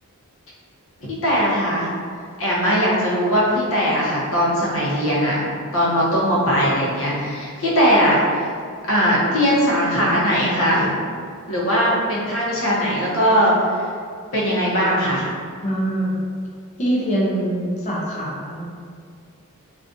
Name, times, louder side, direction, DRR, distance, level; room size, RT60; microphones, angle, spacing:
voice 1, 1.2-1.9 2.4-5.5 5.7-8.5 8.9-10.9 11.5-13.5 14.3-15.2, equal, 65° left, -6 dB, 0.8 m, -19 dB
voice 2, 15.6-16.2 16.8-18.6, right 1 dB, 30° left, -5 dB, 0.5 m, -23 dB
2.6 x 2.4 x 3.5 m, 2.2 s
head